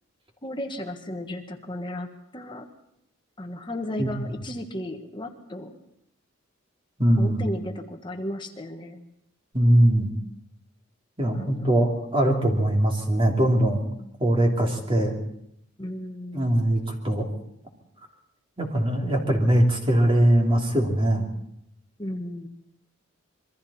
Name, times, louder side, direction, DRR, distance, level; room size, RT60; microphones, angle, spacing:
voice 1, 0.4-2.7 3.4-5.8 7.2-9.0 11.3-11.7 15.8-16.6 22.0-22.5, left 1 dB, 25° left, 4 dB, 1.5 m, -34 dB
voice 2, 7.0-7.6 9.5-10.1 11.2-13.8 14.2-15.1 16.3-17.2 18.6-21.3, right 1 dB, 25° right, 1 dB, 3.1 m, -21 dB
26.5 x 23.0 x 4.3 m, 0.77 s
head